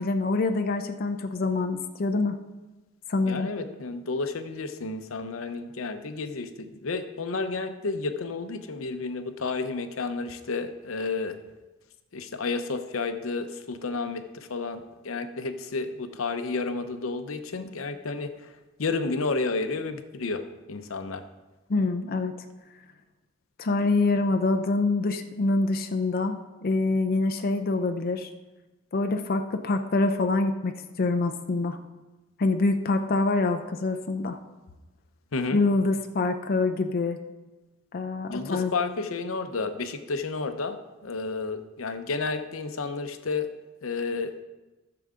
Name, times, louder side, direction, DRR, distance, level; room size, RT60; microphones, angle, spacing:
voice 1, 0.0-2.4 3.1-3.5 21.7-22.3 23.6-28.3 28.9-31.8 32.4-34.4 35.5-37.2 37.9-38.7, left 3 dB, 45° left, 6 dB, 0.5 m, -25 dB
voice 2, 3.3-11.4 12.1-18.5 18.8-21.2 35.3-35.6 38.3-43.5 43.8-44.3, left 3 dB, 80° left, 9 dB, 0.7 m, -31 dB
14.0 x 6.8 x 3.7 m, 1.1 s
head